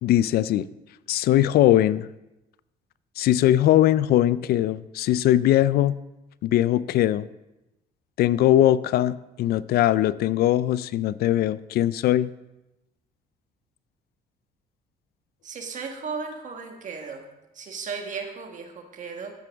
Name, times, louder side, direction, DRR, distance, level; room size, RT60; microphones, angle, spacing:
voice 1, 0.0-0.7 1.1-2.1 3.2-6.0 6.4-7.3 8.2-12.3, left 13 dB, 65° left, 18 dB, 0.4 m, -20 dB
voice 2, 15.4-17.2 17.5-19.3, right 5 dB, 50° right, 3 dB, 1.5 m, -35 dB
13.0 x 9.2 x 3.5 m, 0.96 s
cardioid pair, 110°, 17 cm